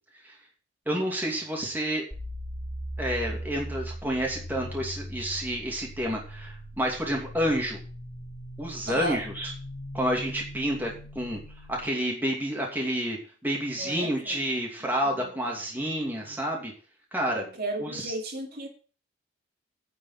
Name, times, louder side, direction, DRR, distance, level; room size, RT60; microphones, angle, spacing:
voice 1, 0.9-2.0 3.0-7.8 8.6-9.5 9.9-11.4 11.7-16.7 17.1-17.5 17.8-18.1, equal, 10° right, -1 dB, 2.4 m, -29 dB
sound 1, 2.1-11.9, equal, 25° left, 4.8 m, -39 dB
voice 2, 8.9-9.2 13.8-14.4 16.2-16.3 17.3-18.7, right 1 dB, 50° right, 1 dB, 2.4 m, -34 dB
9.8 x 5.5 x 7.2 m, 0.39 s
head